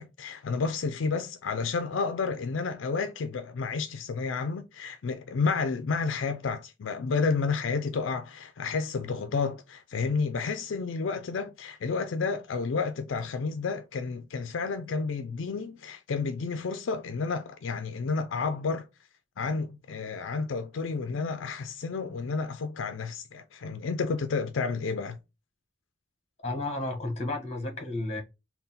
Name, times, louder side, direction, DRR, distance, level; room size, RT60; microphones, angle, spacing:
voice 1, 0.0-18.9 19.4-25.2, left 4 dB, 75° left, 0.4 m, -31 dB
voice 2, 26.4-28.2, left 2 dB, 35° left, 1.2 m, -32 dB
3.8 x 2.2 x 4.0 m
head